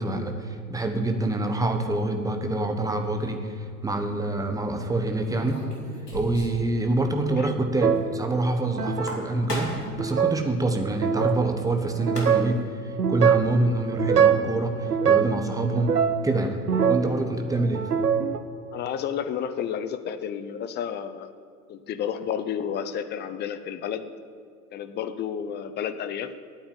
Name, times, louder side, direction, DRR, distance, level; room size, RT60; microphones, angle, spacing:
voice 1, 0.0-5.6 6.1-9.7 10.0-12.6 13.1-16.0 16.2-16.6 16.9-17.9, right 2 dB, 5° right, 5 dB, 1.2 m, -26 dB
sound 1, 3.4-3.7 5.2-6.7 6.9-7.0 7.3-7.4 8.8-10.0 11.7-11.8 12.0-12.6, equal, 85° left, 2.9 m, -36 dB
sound 2, 7.8-8.2 8.8-9.2 9.9-10.4 10.9-11.4 12.0-12.5 13.0-13.5 13.9-14.5 14.9-15.4 15.8-17.2 17.6-18.4, right 7 dB, 80° right, 0.9 m, -22 dB
voice 2, 18.7-21.3 21.7-24.1 24.7-26.3, left 8 dB, 20° left, 11 dB, 0.7 m, -31 dB
11.0 x 8.9 x 9.0 m, 2.1 s
figure-of-eight pair, 90°, 46 cm